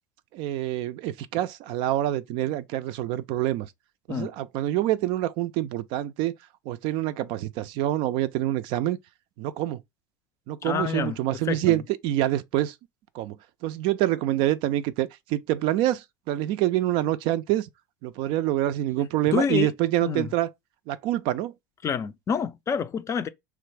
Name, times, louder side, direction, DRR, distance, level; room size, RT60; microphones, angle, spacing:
voice 1, 0.3-3.7 4.1-6.3 6.7-9.0 9.4-9.8 10.5-12.7 13.1-13.4 13.6-17.7 18.0-20.5 20.9-21.5, right 14 dB, 55° right, 0.4 m, -26 dB
voice 2, 10.6-11.2 11.5-11.8 19.3-19.7 20.0-20.3 21.8-23.3, left 7 dB, 30° left, 0.4 m, -27 dB
3.2 x 2.4 x 3.1 m
hypercardioid pair, 80°, 10 cm